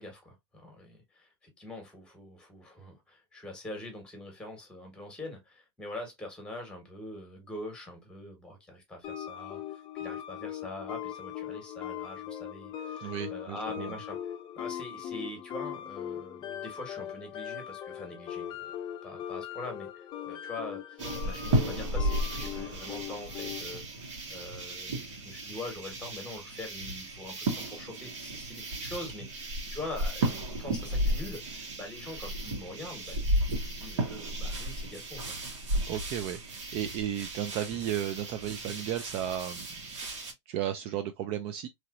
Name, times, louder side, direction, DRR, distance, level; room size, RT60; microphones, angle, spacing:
voice 1, 0.0-14.2 14.6-18.6 19.0-30.3 30.6-35.4, left 2 dB, 5° left, 1.5 m, -43 dB
sound 1, 9.0-23.8, left 10 dB, 30° left, 0.5 m, -40 dB
voice 2, 13.0-14.0 35.8-39.7 40.0-41.7, right 10 dB, 40° right, 0.4 m, -34 dB
sound 2, 21.0-40.3, right 1 dB, 80° right, 1.6 m, -34 dB
3.0 x 2.9 x 2.6 m
supercardioid pair, 135°, 15 cm